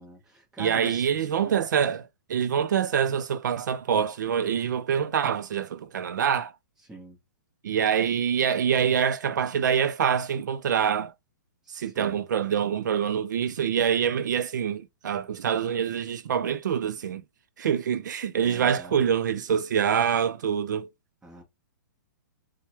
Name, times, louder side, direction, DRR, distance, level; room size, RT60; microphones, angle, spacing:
voice 1, 0.0-1.1 1.4-1.6 6.9-7.2 11.7-12.3 18.4-19.1 21.2-21.4, right 1 dB, 5° right, 0.9 m, -44 dB
voice 2, 0.6-6.5 7.6-11.1 11.7-17.2 17.6-20.9, right 8 dB, 65° right, 0.4 m, -25 dB
4.6 x 2.1 x 2.9 m
hypercardioid pair, 175°, 10 cm